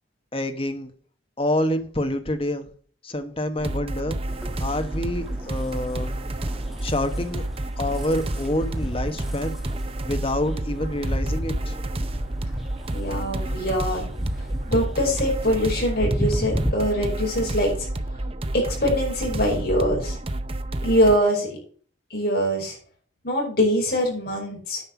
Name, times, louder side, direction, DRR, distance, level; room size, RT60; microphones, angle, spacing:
voice 1, 0.3-0.9 1.4-2.7 3.0-4.2 4.6-6.1 6.8-7.4 7.8-9.6 10.0-11.8, left 1 dB, 30° left, 7 dB, 1.2 m, -27 dB
sound 1, 3.6-21.2, right 1 dB, 30° right, 0.7 m, -30 dB
sound 2, 4.3-16.7, equal, ahead, 1.4 m, -34 dB
voice 2, 12.9-14.1 14.7-17.9 18.5-20.2 20.8-21.6 22.1-22.8 23.2-24.8, equal, 50° left, -1 dB, 5.2 m, -23 dB
9.7 x 5.4 x 7.2 m, 0.44 s
head